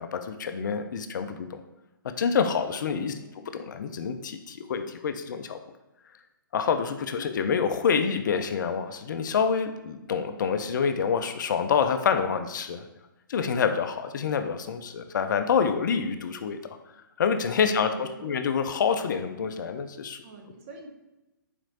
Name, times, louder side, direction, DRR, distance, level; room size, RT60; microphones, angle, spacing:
voice 1, 0.0-1.6 2.2-5.6 6.5-12.9 13.3-16.6 17.2-20.2, left 6 dB, 60° left, 8 dB, 0.4 m, -27 dB
voice 2, 3.1-3.7 7.1-7.4 17.7-18.5 20.2-20.9, right 2 dB, 40° right, 2 dB, 0.7 m, -46 dB
4.1 x 3.0 x 2.8 m, 0.98 s
hypercardioid pair, 130°, 11 cm